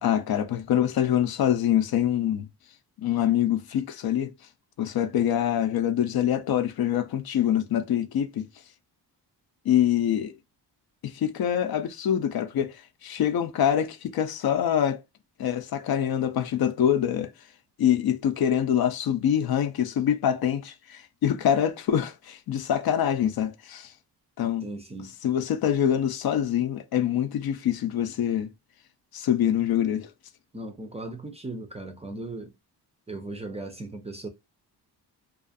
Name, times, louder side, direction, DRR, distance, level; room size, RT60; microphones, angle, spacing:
voice 1, 0.0-2.5 3.0-4.3 4.8-8.5 9.7-10.3 11.0-15.0 15.4-17.3 17.8-23.9 24.4-24.7 25.2-28.5 29.1-30.1, left 10 dB, 60° left, 0.5 m, -25 dB
voice 2, 24.6-25.2 30.5-32.5 33.1-34.3, right 2 dB, 15° right, 0.4 m, -37 dB
2.4 x 2.4 x 2.5 m
wide cardioid pair, 125°, 41 cm